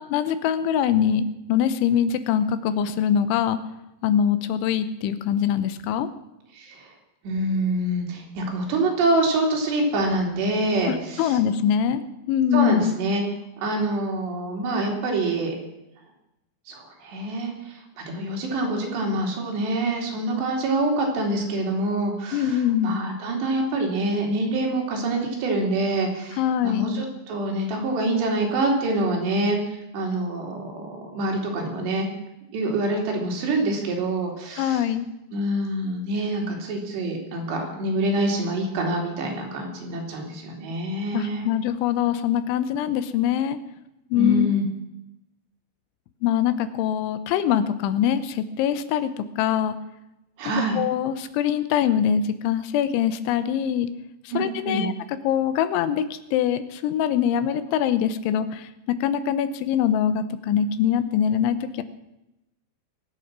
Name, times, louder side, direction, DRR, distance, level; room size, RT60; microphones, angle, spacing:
voice 1, 0.0-3.6 4.0-6.1 10.9-12.0 12.3-12.9 22.3-23.0 26.4-26.9 34.6-35.1 41.1-43.6 44.1-44.5 46.2-49.8 50.7-53.9 54.2-54.9 55.2-61.8, left 9 dB, 80° left, 12 dB, 3.2 m, -23 dB
voice 2, 6.5-6.9 7.2-11.4 12.5-13.2 13.6-15.5 16.7-17.8 18.1-32.1 32.5-34.8 35.3-41.5 44.2-44.6 50.4-50.8 54.3-54.4 54.6-54.9, right 2 dB, 65° right, 0 dB, 4.8 m, -26 dB
23.0 x 8.5 x 6.0 m, 0.89 s
omnidirectional pair, 5.4 m